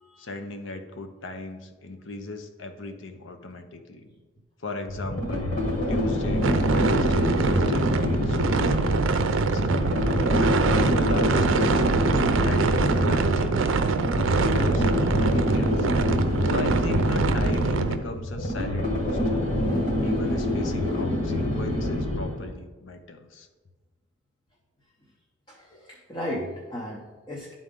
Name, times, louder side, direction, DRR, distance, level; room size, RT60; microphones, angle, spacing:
voice 1, 0.2-4.0 4.6-5.5 5.9-9.7 10.3-11.8 12.4-13.7 14.2-15.9 16.4-19.5 20.0-23.5, left 2 dB, 75° left, 7 dB, 0.7 m, -37 dB
sound 1, 4.9-22.5, left 1 dB, 45° left, 1.7 m, -26 dB
sound 2, 6.4-18.0, right 4 dB, 80° right, 0.5 m, -24 dB
voice 2, 25.5-27.5, equal, 25° left, -2 dB, 0.7 m, -36 dB
10.5 x 3.9 x 3.7 m, 1.3 s
head